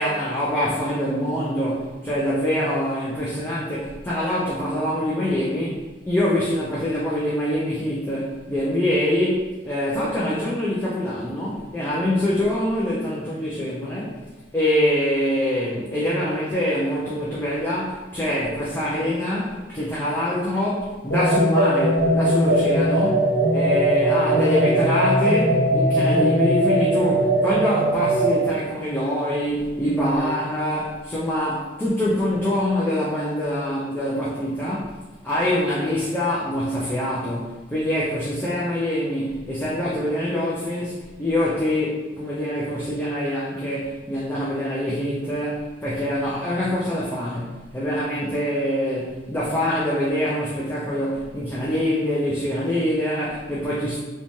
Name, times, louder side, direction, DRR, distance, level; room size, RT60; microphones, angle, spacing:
voice 1, 0.0-5.8 6.1-14.2 14.5-23.2 23.5-34.9 35.2-54.0, left 1 dB, 10° left, -7 dB, 0.3 m, -24 dB
sound 1, 21.1-28.5, right 1 dB, 65° left, 0.9 m, -20 dB
3.0 x 2.2 x 2.6 m, 1.2 s
head